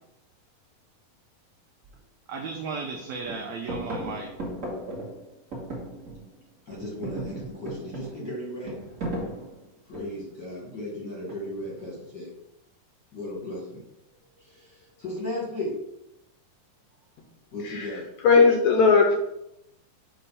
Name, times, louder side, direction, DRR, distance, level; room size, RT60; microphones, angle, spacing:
sound 1, 1.8-1.9 2.4-3.0 3.2-6.4 6.7-10.3 11.3-11.8, right 1 dB, 35° right, 1.4 m, -36 dB
voice 1, 2.3-4.3, right 4 dB, 85° right, 2 dB, 1.6 m, -34 dB
voice 2, 6.7-8.8 9.8-12.3 13.1-13.8 14.3-15.7 17.5-18.1, left 1 dB, 45° left, -4 dB, 1.4 m, -35 dB
voice 3, 18.2-19.2, left 4 dB, 75° left, 1 dB, 1.7 m, -18 dB
6.9 x 3.0 x 5.5 m, 0.84 s
omnidirectional pair, 3.9 m